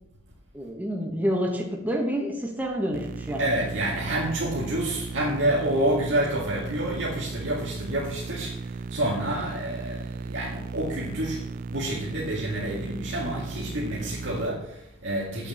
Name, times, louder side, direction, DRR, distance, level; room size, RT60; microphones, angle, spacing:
voice 1, 0.5-3.5, equal, 10° right, 0 dB, 1.5 m, -28 dB
sound 1, 2.9-14.5, right 4 dB, 45° right, 0.3 m, -36 dB
voice 2, 3.4-15.5, right 1 dB, 70° right, -5 dB, 2.2 m, -28 dB
8.5 x 6.6 x 7.2 m, 0.81 s
head